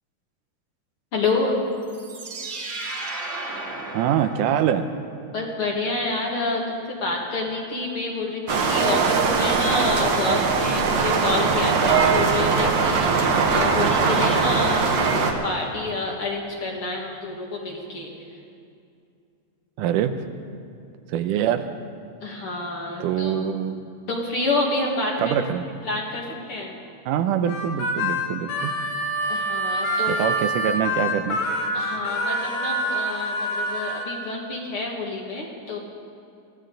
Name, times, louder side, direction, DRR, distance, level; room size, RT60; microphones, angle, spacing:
voice 1, 1.1-1.6 5.3-18.4 22.2-23.5 24.1-25.3 25.8-26.7 29.2-30.3 31.7-35.8, left 2 dB, 45° left, -1 dB, 2.3 m, -28 dB
sound 1, 1.8-5.0, right 2 dB, 45° right, 1.8 m, -34 dB
voice 2, 3.9-4.9 19.8-20.1 21.1-21.7 23.0-23.8 25.2-25.7 27.1-28.7 30.1-31.4, right 9 dB, 80° right, 9 dB, 2.2 m, -24 dB
sound 2, 8.5-15.3, right 5 dB, 60° right, 2.3 m, -21 dB
Harmonica, 27.5-34.0, equal, 80° left, 3.2 m, -26 dB
23.0 x 15.5 x 3.9 m, 2.5 s
omnidirectional pair, 3.7 m